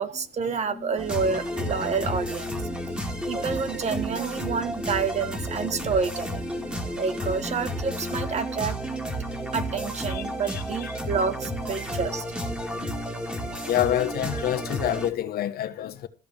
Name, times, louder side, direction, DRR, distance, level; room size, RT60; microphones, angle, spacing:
voice 1, 0.0-2.5 3.3-6.4 7.0-8.8 9.5-12.2, right 5 dB, 40° right, 1.4 m, -28 dB
sound 1, 0.6-15.1, left 4 dB, 40° left, 1.8 m, -43 dB
sound 2, 1.0-15.1, equal, 5° right, 2.1 m, -32 dB
voice 2, 10.1-10.9 12.4-12.5 13.0-13.1 13.6-16.1, left 12 dB, 65° left, 1.2 m, -28 dB
14.0 x 5.1 x 7.4 m
cardioid pair, 110°, 17 cm